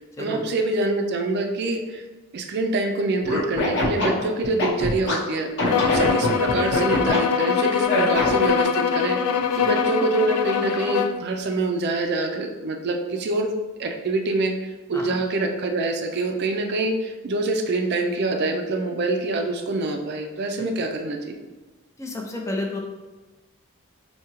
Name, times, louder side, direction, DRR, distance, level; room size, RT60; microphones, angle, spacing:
voice 1, 0.2-2.0 2.3-5.5 5.9-13.5 13.8-21.4, right 2 dB, 50° right, 4 dB, 0.4 m, -25 dB
Scratching (performance technique), 3.2-5.1 5.6-7.2 7.9-8.5, left 1 dB, 55° left, 0.9 m, -23 dB
sound 1, 5.7-11.2, left 7 dB, 90° left, 0.3 m, -23 dB
voice 2, 22.0-22.8, left 2 dB, 15° left, 1 dB, 0.4 m, -31 dB
4.7 x 2.7 x 2.9 m, 1.2 s
head